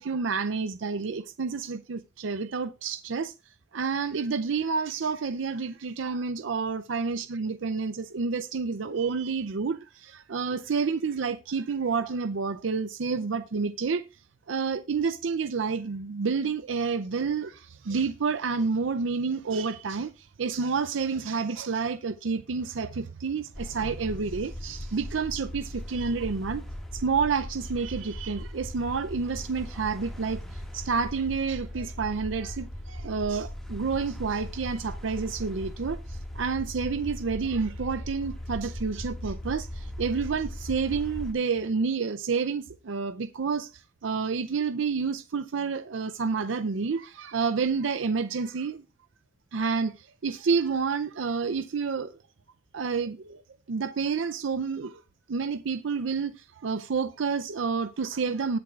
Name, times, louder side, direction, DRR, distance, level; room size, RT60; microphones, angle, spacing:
voice 1, 0.0-3.3 3.7-14.0 14.5-26.6 26.9-48.8 49.5-52.1 52.7-53.4 53.7-55.0 55.3-58.6, right 5 dB, 80° right, 0.5 m, -29 dB
sound 1, 23.5-41.3, equal, ahead, 1.8 m, -38 dB
19.5 x 6.9 x 2.4 m
head